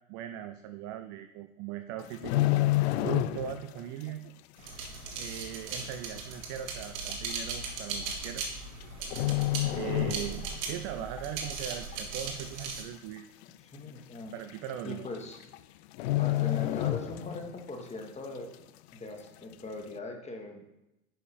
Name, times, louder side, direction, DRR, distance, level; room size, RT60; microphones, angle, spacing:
voice 1, 0.1-2.4 3.0-4.3 5.2-8.4 9.7-13.3 14.3-15.1, right 10 dB, 30° right, 8 dB, 0.4 m, -39 dB
sound 1, 2.0-3.7 4.0-4.3 4.8-4.9 5.8-5.9 6.2-6.3 7.1-7.3 8.4-8.8 9.1-10.7 11.0-11.2 11.7-12.2 12.6-12.7 12.9-13.0 13.4-13.5 14.5-14.6 14.9-15.2 15.4-15.6 15.9-17.6 17.9-18.0, left 16 dB, 50° left, 0.4 m, -29 dB
sound 2, 4.6-12.8, right 4 dB, 60° right, 2.1 m, -38 dB
voice 2, 9.6-10.1 13.6-14.4 14.8-15.4 16.2-18.5 18.9-20.7, left 2 dB, 15° left, 3 dB, 1.4 m, -41 dB
10.0 x 5.4 x 4.2 m, 0.92 s
figure-of-eight pair, 90°, 44 cm